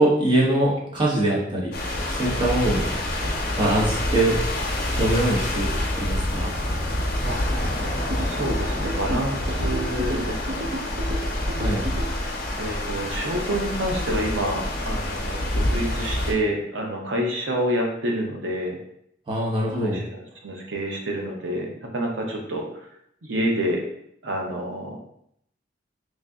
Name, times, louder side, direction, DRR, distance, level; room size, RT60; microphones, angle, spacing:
voice 1, 0.0-1.7 2.1-2.9 3.6-4.4 5.0-5.7 6.0-6.5 9.6-9.7 11.5-11.8 19.3-20.0, right 1 dB, 25° right, -5 dB, 1.0 m, -22 dB
sound 1, 1.7-16.3, left 1 dB, 55° left, 0.7 m, -27 dB
sound 2, 8.1-12.1, right 1 dB, 50° right, 0.5 m, -32 dB
voice 2, 8.2-10.6 12.6-18.8 19.8-22.8 23.2-23.8 24.2-25.0, right 1 dB, 85° right, 0 dB, 0.8 m, -28 dB
3.2 x 2.6 x 3.5 m, 0.72 s
head